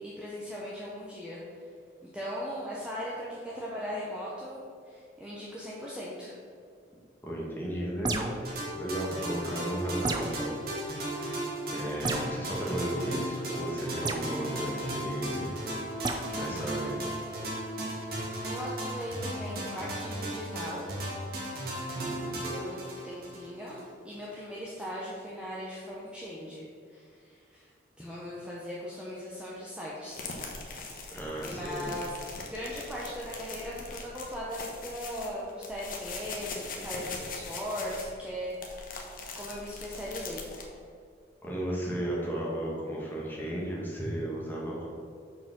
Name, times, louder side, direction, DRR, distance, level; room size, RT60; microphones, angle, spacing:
voice 1, 0.0-1.4 2.1-4.6 4.8-6.3 18.4-20.9 22.5-27.7 28.0-30.2 31.4-32.1 32.5-38.9 39.3-40.5, equal, 5° right, -6 dB, 0.8 m, -39 dB
voice 2, 7.2-8.4 8.7-10.6 11.7-15.5 16.3-17.0 21.9-22.4 31.1-31.9 41.4-44.9, right 1 dB, 10° left, -4 dB, 1.4 m, -34 dB
sound 1, 8.0-8.5 10.0-10.4 12.0-12.3 14.0-14.3 16.0-16.2, right 3 dB, 20° right, 0.4 m, -31 dB
sound 2, 8.4-23.9, right 1 dB, 55° right, 1.6 m, -35 dB
sound 3, 30.1-40.6, left 3 dB, 50° left, 1.0 m, -41 dB
6.1 x 4.9 x 5.9 m, 2.2 s
head